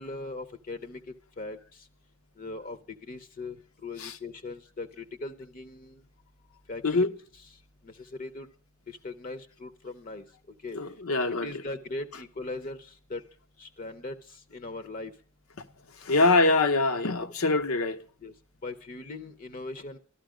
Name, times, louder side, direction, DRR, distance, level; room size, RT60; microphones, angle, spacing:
voice 1, 0.0-1.6 2.4-6.0 6.7-7.1 7.8-8.5 8.9-10.2 10.6-10.8 11.3-13.2 13.6-14.1 14.5-15.1 18.2-18.3 18.6-20.0, left 2 dB, 40° left, 0.7 m, -39 dB
voice 2, 10.7-11.5 16.0-18.0, left 3 dB, 80° left, 0.9 m, -24 dB
13.0 x 12.5 x 5.0 m
head